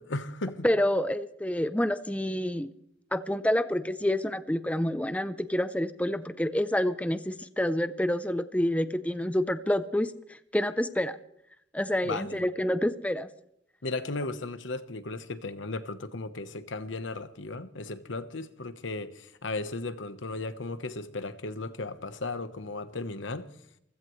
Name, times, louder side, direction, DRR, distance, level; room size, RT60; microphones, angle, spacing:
voice 1, 0.1-0.7 12.0-12.4 13.8-23.5, left 2 dB, 85° left, 1.1 m, -35 dB
voice 2, 0.6-2.7 3.1-10.1 10.5-11.2 11.7-13.3, left 1 dB, 5° left, 0.5 m, -28 dB
27.0 x 16.0 x 3.2 m
head